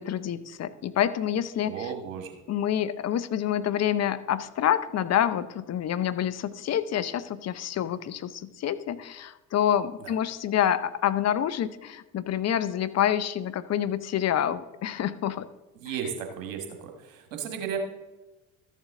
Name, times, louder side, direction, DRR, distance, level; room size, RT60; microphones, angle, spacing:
voice 1, 0.0-1.7 2.5-15.5, left 10 dB, 40° left, 14 dB, 0.7 m, -27 dB
voice 2, 1.6-2.3 10.0-10.1 15.7-17.8, right 7 dB, 85° right, 5 dB, 1.5 m, -35 dB
13.5 x 7.5 x 3.7 m, 1.1 s
hypercardioid pair, 60°, 38 cm